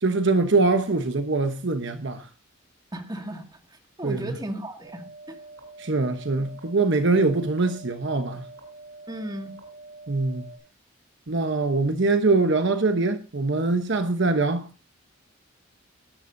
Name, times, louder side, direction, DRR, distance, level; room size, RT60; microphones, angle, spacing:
voice 1, 0.0-2.3 4.0-4.3 5.8-8.5 10.1-10.5 11.3-14.7, right 3 dB, 60° right, 1.0 m, -23 dB
voice 2, 2.9-3.4 3.7-5.4 9.1-9.5, right 1 dB, 20° right, 2.3 m, -35 dB
sound 1, 4.8-10.6, right 2 dB, 90° right, 7.5 m, -45 dB
20.5 x 12.0 x 2.7 m
head